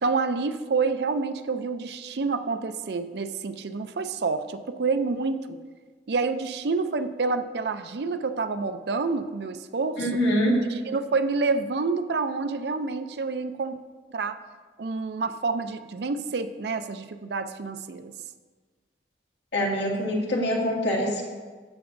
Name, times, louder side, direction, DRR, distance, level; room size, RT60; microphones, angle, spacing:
voice 1, 0.0-5.6 6.1-10.1 10.9-13.8 14.1-14.4 14.8-18.1, right 4 dB, 65° right, 10 dB, 0.5 m, -28 dB
voice 2, 10.0-10.6 19.5-21.2, equal, 85° left, -3 dB, 2.2 m, -24 dB
13.0 x 7.9 x 2.6 m, 1.4 s
head